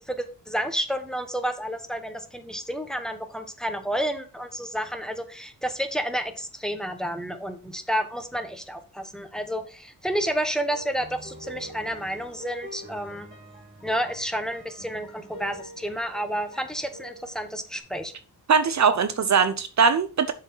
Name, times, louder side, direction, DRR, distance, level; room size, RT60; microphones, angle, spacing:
voice 1, 0.0-13.3 13.8-18.1, equal, ahead, 1.2 m, -30 dB
sound 1, 10.1-17.8, right 1 dB, 30° right, 3.3 m, -45 dB
voice 2, 18.5-20.3, right 6 dB, 50° right, 0.7 m, -21 dB
6.9 x 4.8 x 5.6 m
cardioid pair, 90°, 35 cm